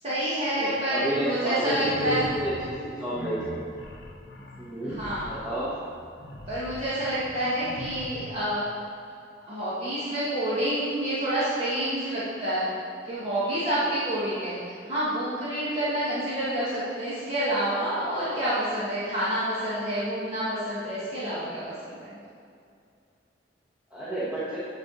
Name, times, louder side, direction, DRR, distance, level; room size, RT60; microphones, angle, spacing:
voice 1, 0.0-2.3 4.8-5.3 6.5-8.7 9.5-12.7 13.0-22.2, right 1 dB, 35° right, -11 dB, 1.7 m, -28 dB
voice 2, 0.6-3.6 4.6-5.0 5.2-5.7 23.9-24.6, right 1 dB, 5° right, -11 dB, 1.3 m, -30 dB
sound 1, 1.6-8.4, left 1 dB, 60° left, 0.7 m, -41 dB
10.0 x 4.7 x 4.0 m, 2.4 s
head